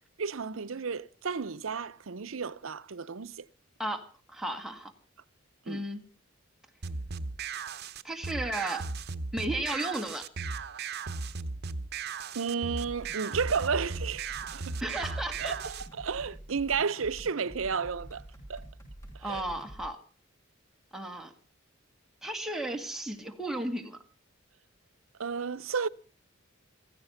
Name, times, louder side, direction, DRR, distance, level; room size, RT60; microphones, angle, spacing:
voice 1, 0.2-3.4 5.7-5.8 12.3-14.8 15.4-18.2 18.5-18.7 19.3-19.4 25.2-25.9, right 5 dB, 80° right, 0.7 m, -32 dB
voice 2, 3.8-4.9 5.7-6.0 8.0-8.8 9.3-10.2 14.8-15.6 19.2-20.0 20.9-21.3 22.2-24.0, right 1 dB, ahead, 2.2 m, -34 dB
sound 1, 6.8-15.9, right 4 dB, 55° right, 1.0 m, -37 dB
sound 2, 12.6-19.8, right 1 dB, 15° left, 7.3 m, -47 dB
15.5 x 15.5 x 5.7 m
head